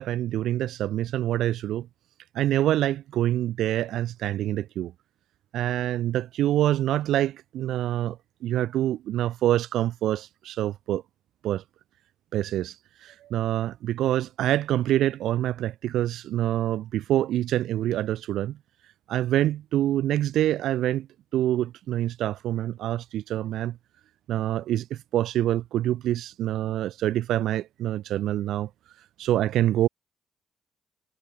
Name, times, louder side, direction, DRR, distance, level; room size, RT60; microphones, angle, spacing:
voice 1, 0.0-1.9 2.3-4.9 5.5-8.2 8.4-11.0 11.4-11.6 12.3-12.8 13.0-18.6 19.1-21.1 21.3-23.8 24.3-28.7 29.2-29.9, right 13 dB, 80° right, 1.3 m, -26 dB
cardioid pair, 90°, 0 cm